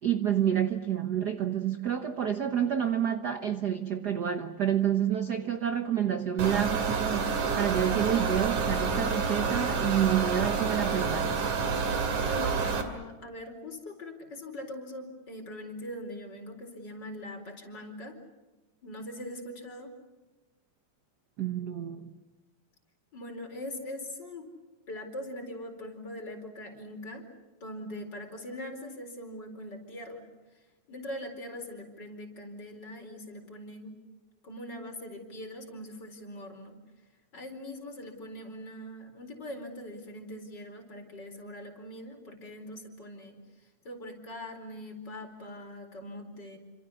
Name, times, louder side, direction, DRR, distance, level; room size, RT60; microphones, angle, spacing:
voice 1, 0.0-11.4 21.4-22.1, right 9 dB, 60° right, 8 dB, 1.0 m, -28 dB
sound 1, 6.4-12.8, right 5 dB, 80° right, 3.9 m, -29 dB
voice 2, 12.3-18.2 18.8-19.9 23.1-24.5 24.9-27.2 27.6-30.3 30.9-34.0 34.4-36.8 37.3-43.4 43.8-46.6, left 1 dB, 35° left, 3 dB, 4.9 m, -42 dB
28.5 x 26.5 x 7.0 m, 1.2 s
omnidirectional pair, 3.3 m